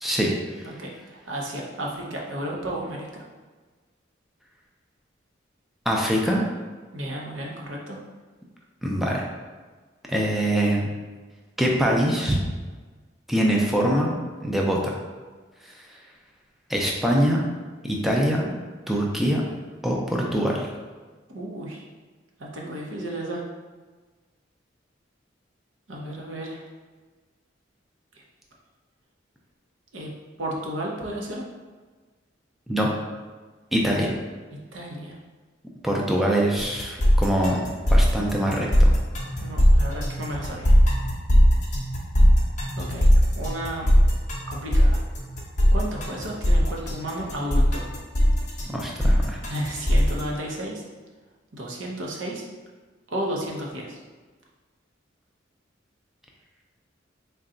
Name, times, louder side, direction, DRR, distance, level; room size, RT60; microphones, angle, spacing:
voice 1, 0.0-0.7 5.9-6.4 8.8-9.3 10.1-10.9 11.6-12.4 13.3-14.1 14.4-14.9 16.7-17.4 17.8-18.5 18.9-19.4 19.8-20.7 32.7-32.9 33.7-34.1 35.8-37.6 37.9-38.9 48.7-49.4, equal, ahead, -2 dB, 0.4 m, -23 dB
voice 2, 0.7-3.3 6.9-8.0 21.3-21.8 22.4-23.4 25.9-26.7 28.1-28.2 29.9-30.1 30.4-31.4 34.7-35.2 39.4-40.8 42.8-43.1 43.3-44.0 44.5-45.0 45.7-47.9 49.5-50.8 51.5-52.4 53.1-54.0, right 1 dB, 85° right, -2 dB, 0.8 m, -33 dB
sound 1, 36.6-50.2, equal, 40° left, 0.7 m, -19 dB
3.9 x 2.3 x 3.7 m, 1.4 s
head